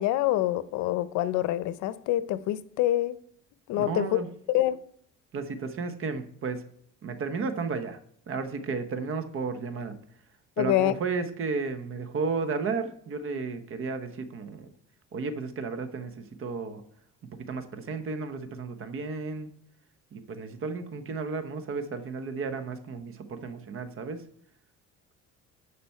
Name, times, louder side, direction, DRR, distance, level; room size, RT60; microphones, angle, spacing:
voice 1, 0.0-3.2 3.7-4.2 4.5-4.8 10.6-10.9, left 14 dB, 80° left, 0.6 m, -26 dB
voice 2, 3.8-4.3 5.3-6.6 7.0-8.0 8.3-10.0 10.6-14.7 15.1-16.8 17.3-19.5 20.1-24.2, right 4 dB, 45° right, 1.1 m, -33 dB
11.5 x 5.1 x 4.4 m
cardioid pair, 130°, 29 cm